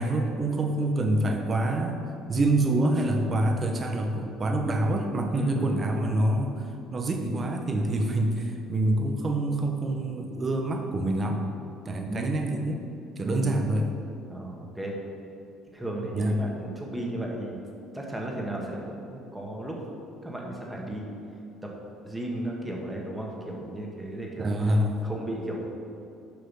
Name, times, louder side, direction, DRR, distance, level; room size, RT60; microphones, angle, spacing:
voice 1, 0.0-2.0 2.3-6.6 6.9-11.4 11.9-12.8 13.2-13.9 16.1-16.4 24.4-25.0, right 1 dB, 35° right, 4 dB, 1.0 m, -26 dB
voice 2, 5.3-5.8 11.8-12.3 13.2-13.5 14.3-15.0 15.7-17.6 17.9-19.8 20.2-21.1 21.6-21.7 22.0-24.5 25.0-25.7, right 1 dB, 10° right, -1 dB, 1.6 m, -35 dB
7.1 x 5.5 x 5.6 m, 2.7 s
supercardioid pair, 95°, 0 cm